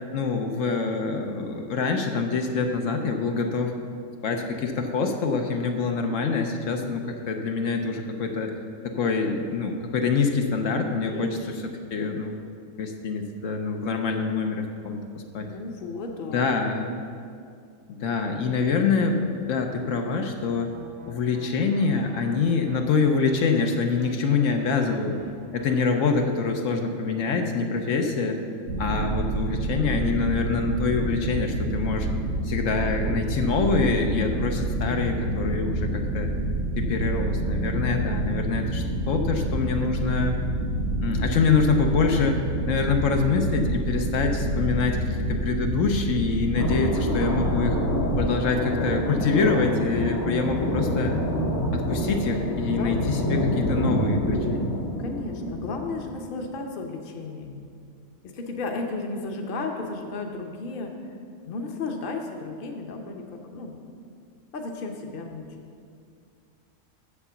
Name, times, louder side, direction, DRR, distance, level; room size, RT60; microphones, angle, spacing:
voice 1, 0.1-3.7 4.2-8.6 8.8-12.4 12.8-15.5 16.3-17.0 17.9-19.2 19.5-20.7 21.1-25.2 25.5-28.4 28.8-32.1 32.4-36.3 36.8-40.4 41.0-42.4 42.7-47.8 48.2-51.1 51.7-54.7, left 4 dB, 80° left, 4 dB, 1.1 m, -25 dB
voice 2, 11.0-11.5 15.4-16.5 52.7-53.0 55.0-57.6 58.2-60.9 61.5-63.7 64.5-65.5, left 3 dB, 50° left, 3 dB, 1.0 m, -34 dB
sound 1, 18.5-26.2, right 2 dB, 70° right, 1.2 m, -47 dB
sound 2, 28.7-48.3, right 1 dB, 85° right, 1.9 m, -28 dB
sound 3, 46.6-56.4, equal, 20° left, 0.5 m, -27 dB
7.1 x 6.7 x 6.9 m, 2.3 s
omnidirectional pair, 1.3 m